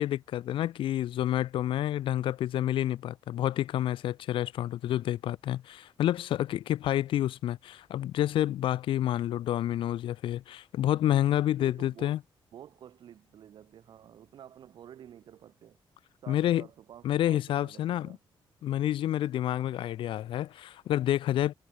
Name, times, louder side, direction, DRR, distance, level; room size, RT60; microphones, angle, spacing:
voice 1, 0.0-12.2 16.3-16.6 17.0-18.2 18.6-21.5, left 12 dB, 75° left, 0.6 m, -29 dB
voice 2, 11.4-12.2 12.5-15.8 16.2-18.2, right 10 dB, 60° right, 1.6 m, -50 dB
wide cardioid pair, 175°, 9 cm